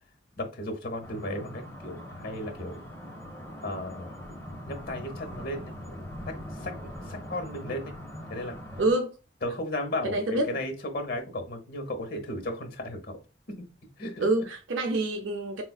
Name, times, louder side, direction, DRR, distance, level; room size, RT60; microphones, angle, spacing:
voice 1, 0.4-2.8 3.6-4.1 4.7-6.0 6.3-6.7 7.1-7.9 8.3-8.6 9.4-13.2 14.0-14.3, left 1 dB, 55° left, 0.9 m, -35 dB
sound 1, 1.0-8.9, equal, 15° left, 0.8 m, -41 dB
voice 2, 8.8-9.2 10.0-10.6 14.2-15.6, right 2 dB, 75° right, 0.5 m, -27 dB
4.3 x 2.4 x 2.2 m
head